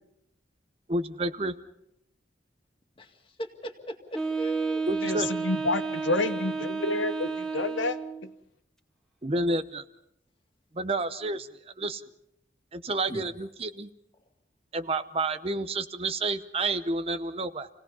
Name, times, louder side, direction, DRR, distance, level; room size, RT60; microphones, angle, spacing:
voice 1, 0.9-1.5 4.9-5.3 9.2-9.8 10.7-12.0 12.7-13.9 14.7-17.7, right 2 dB, 30° right, 11 dB, 0.8 m, -30 dB
voice 2, 3.0-4.8 13.1-13.2, right 1 dB, 30° left, 4 dB, 2.2 m, -38 dB
Wind instrument woodwind instrument, 4.1-8.3, right 4 dB, 5° left, 2.1 m, -31 dB
voice 3, 5.0-8.0, left 2 dB, 90° left, 10 dB, 1.1 m, -29 dB
28.5 x 18.0 x 5.5 m, 0.78 s
head